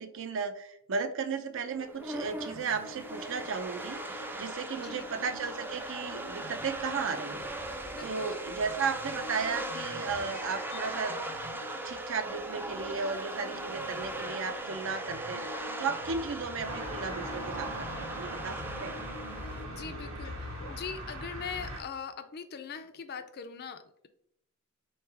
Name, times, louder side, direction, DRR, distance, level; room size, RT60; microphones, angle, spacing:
voice 1, 0.0-7.5 8.0-11.2 11.7-19.0, right 5 dB, 65° right, 9 dB, 0.5 m, -35 dB
sound 1, 1.7-19.7, right 2 dB, 10° right, 0.4 m, -39 dB
sound 2, 1.8-20.7, left 3 dB, 75° left, 0.7 m, -48 dB
voice 2, 7.9-8.3 19.4-24.1, left 6 dB, 50° left, 9 dB, 0.4 m, -41 dB
sound 3, 16.6-21.8, right 1 dB, 80° right, 1.5 m, -40 dB
3.5 x 3.2 x 4.7 m, 0.71 s
head